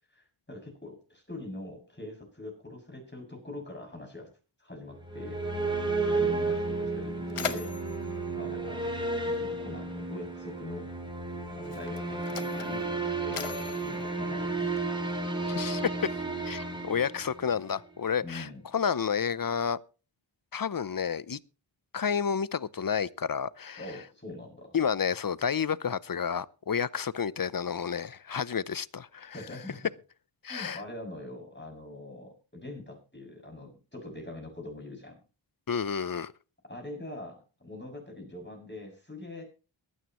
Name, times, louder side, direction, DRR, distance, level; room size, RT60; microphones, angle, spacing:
voice 1, 0.1-4.3 4.6-5.4 6.1-7.7 8.3-9.0 9.2-10.9 11.5-15.6 18.2-18.6 23.8-24.7 29.3-29.9 30.5-35.2 36.7-39.4, left 2 dB, 20° left, 6.9 m, -43 dB
sound 1, 4.9-17.8, right 3 dB, 10° right, 5.0 m, -32 dB
Mechanisms, 6.4-6.5 6.9-9.6 10.6-10.7 11.5-15.1, left 6 dB, 85° left, 1.2 m, -41 dB
voice 2, 15.5-15.8 16.4-19.8 20.5-21.4 21.9-23.8 24.7-29.4 30.4-30.8 35.7-36.3, left 7 dB, 45° left, 0.7 m, -30 dB
23.0 x 9.4 x 3.1 m
cardioid pair, 45°, 50 cm